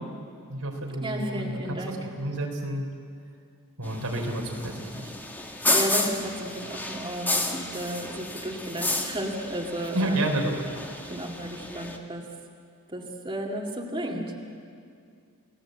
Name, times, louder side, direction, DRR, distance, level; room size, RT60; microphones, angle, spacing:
voice 1, 0.5-2.8 3.8-5.1 9.9-10.6, right 1 dB, 90° right, 1 dB, 4.2 m, -30 dB
voice 2, 1.0-2.1 5.7-10.3 11.1-12.3 12.9-14.3, right 1 dB, 25° right, -1 dB, 2.2 m, -33 dB
sound 1, 3.8-12.0, left 2 dB, 10° left, 1.7 m, -31 dB
29.5 x 18.0 x 8.0 m, 2.3 s
head